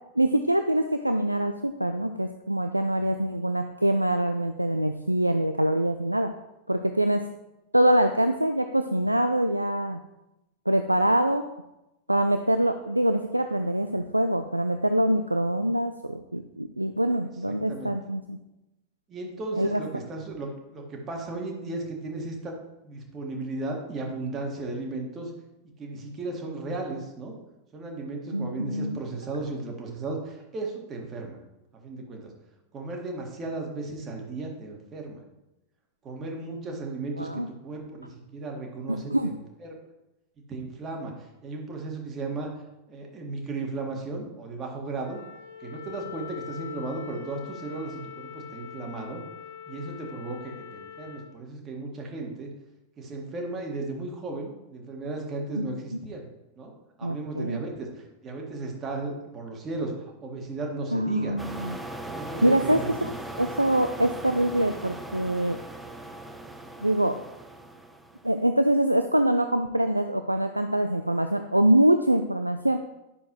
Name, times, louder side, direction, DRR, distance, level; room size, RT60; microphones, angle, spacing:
voice 1, 0.2-6.3 6.7-7.2 7.7-10.0 10.7-11.4 12.1-18.4 19.6-19.8 28.3-29.0 37.2-37.5 38.9-39.3 55.6-55.7 57.0-57.6 60.9-61.8 62.4-62.8 63.4-65.6 66.8-67.2 68.2-72.8, right 1 dB, 85° right, 8 dB, 0.3 m, -24 dB
voice 2, 17.5-17.9 19.1-22.6 22.8-25.3 25.8-27.3 27.7-31.4 31.8-32.3 32.7-35.2 36.0-39.8 40.5-42.5 42.9-45.2 45.6-49.2 49.7-52.5 53.0-56.3 56.6-56.7 57.0-61.4 62.1-63.3, right 3 dB, 25° right, 1 dB, 1.8 m, -35 dB
Wind instrument woodwind instrument, 45.0-51.3, left 8 dB, 60° left, 1.2 m, -42 dB
sound 1, 61.4-68.4, right 2 dB, 5° right, 0.7 m, -39 dB
10.0 x 6.5 x 3.0 m, 0.93 s
figure-of-eight pair, 90°, 0 cm